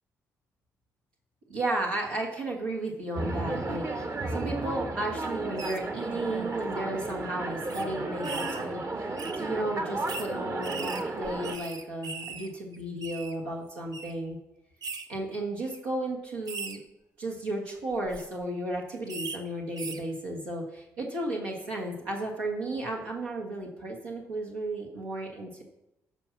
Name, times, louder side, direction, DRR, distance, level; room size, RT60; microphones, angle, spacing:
voice 1, 1.5-9.1 9.4-14.4 15.1-16.8 17.2-25.6, right 1 dB, 85° right, -3 dB, 1.5 m, -34 dB
sound 1, 3.2-11.6, right 2 dB, 40° right, 1.2 m, -33 dB
sound 2, 5.6-5.8 6.6-6.7 7.0-7.1 7.7-7.8 8.2-8.6 9.2-9.4 10.1-10.3 10.6-12.5 12.7-13.3 13.9-14.1 14.8-15.0 15.6-15.8 16.5-16.8 17.9-18.2 19.1-19.4 19.8-20.0, right 4 dB, 55° right, 1.0 m, -39 dB
13.0 x 4.5 x 5.8 m, 0.90 s
hypercardioid pair, 45°, 8 cm